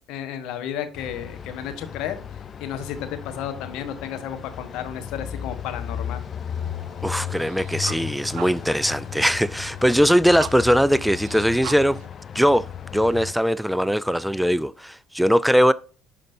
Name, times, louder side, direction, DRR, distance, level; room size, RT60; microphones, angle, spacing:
voice 1, 0.1-2.2 2.6-6.2, left 9 dB, 70° left, 1.1 m, -32 dB
sound 1, 0.9-13.3, left 8 dB, 45° left, 0.7 m, -35 dB
sound 2, 6.5-12.1, right 13 dB, 70° right, 0.4 m, -42 dB
voice 2, 7.0-12.0 12.3-15.7, equal, ahead, 0.3 m, -20 dB
10.5 x 5.1 x 2.6 m
hypercardioid pair, 65°, 0 cm